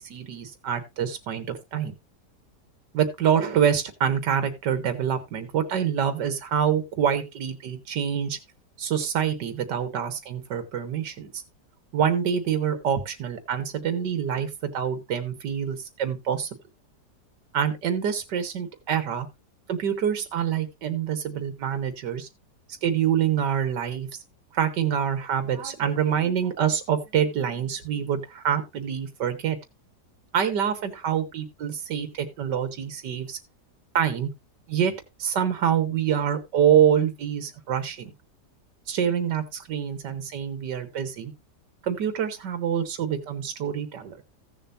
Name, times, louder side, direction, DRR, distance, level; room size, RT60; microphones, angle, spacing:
voice 1, 0.0-1.9 2.9-8.4 8.8-11.4 11.9-16.5 17.5-19.3 19.7-22.3 22.8-24.1 24.5-29.6 30.3-33.4 34.0-34.3 34.7-34.9 35.2-38.1 38.9-41.3 41.8-44.2, right 8 dB, 85° right, 9 dB, 1.8 m, -26 dB
16.0 x 7.0 x 2.7 m, 0.23 s
omnidirectional pair, 1.8 m